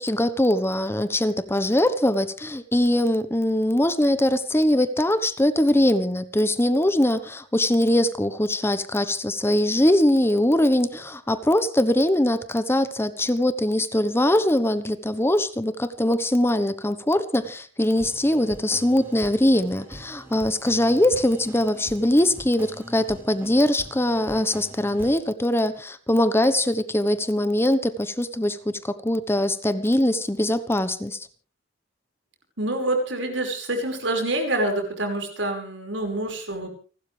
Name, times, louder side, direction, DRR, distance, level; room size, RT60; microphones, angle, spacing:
voice 1, 0.0-31.3, left 1 dB, 15° left, 12 dB, 1.0 m, -22 dB
sound 1, 17.9-25.2, equal, 15° right, 4.6 m, -43 dB
voice 2, 32.6-36.7, right 1 dB, 85° right, 4 dB, 5.3 m, -26 dB
30.0 x 12.5 x 3.4 m, 0.38 s
head